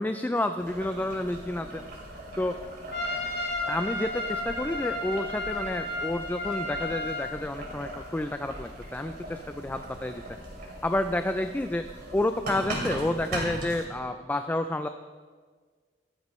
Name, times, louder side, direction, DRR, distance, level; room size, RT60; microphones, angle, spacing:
voice 1, 0.0-1.8 2.4-2.6 3.7-10.2 10.8-14.9, left 1 dB, 10° left, 8 dB, 0.3 m, -30 dB
Boiling, 0.6-13.8, right 1 dB, 55° right, 3.1 m, -39 dB
Trumpet, 2.9-7.3, left 2 dB, 60° left, 2.2 m, -33 dB
15.0 x 12.5 x 3.1 m, 1.5 s
head